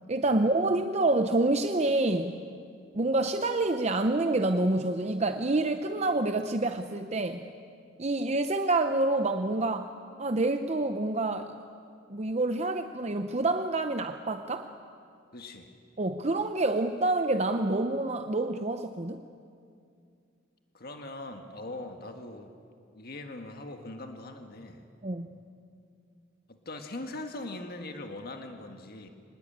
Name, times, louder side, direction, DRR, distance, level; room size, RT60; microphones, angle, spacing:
voice 1, 0.1-2.4 2.9-7.5 8.0-9.9 10.2-11.5 12.1-14.7 16.0-19.2 25.0-25.4, right 2 dB, 35° right, 7 dB, 0.7 m, -27 dB
voice 2, 15.3-15.7 20.7-22.5 22.9-24.8 26.5-29.1, left 2 dB, 50° left, 5 dB, 1.7 m, -41 dB
25.5 x 20.0 x 8.7 m, 2.3 s
head